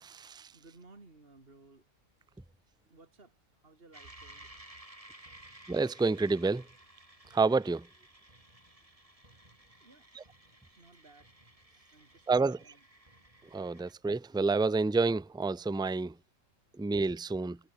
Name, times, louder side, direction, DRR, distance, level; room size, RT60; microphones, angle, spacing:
voice 1, 0.0-0.5 5.7-6.6 7.3-7.9 10.1-10.2 12.3-12.6 13.5-16.1 16.8-17.6, right 3 dB, 5° right, 0.5 m, -29 dB
voice 2, 0.5-1.9 2.9-4.5 9.8-10.1 10.8-11.3 11.9-12.8, right 3 dB, 45° right, 3.3 m, -58 dB
sound 1, 3.9-13.9, right 1 dB, 25° right, 4.8 m, -56 dB
omnidirectional pair, 1.4 m